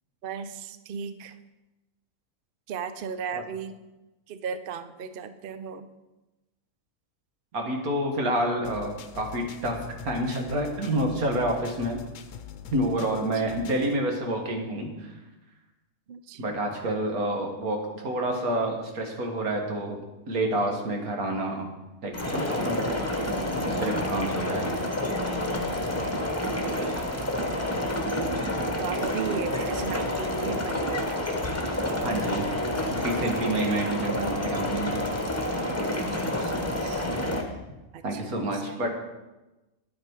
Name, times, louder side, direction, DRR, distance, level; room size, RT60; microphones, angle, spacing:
voice 1, 0.2-1.4 2.7-3.8 4.3-5.9 13.5-13.6 15.0-15.1 16.1-16.6 23.8-24.1 26.6-27.4 28.8-31.1 33.5-34.5 35.7-37.1 37.9-38.8, right 6 dB, 55° right, 11 dB, 0.6 m, -37 dB
voice 2, 7.5-12.0 12.7-15.1 16.4-17.8 18.0-20.0 20.3-21.7 22.0-22.8 23.3-24.7 32.0-32.5 32.9-35.0 38.0-38.9, right 1 dB, 85° right, 2 dB, 2.1 m, -28 dB
sound 1, 8.6-13.9, left 9 dB, 70° left, 1.0 m, -43 dB
sound 2, 22.1-37.4, left 1 dB, 10° left, 1.0 m, -29 dB
9.8 x 8.7 x 4.7 m, 1.1 s
omnidirectional pair, 1.5 m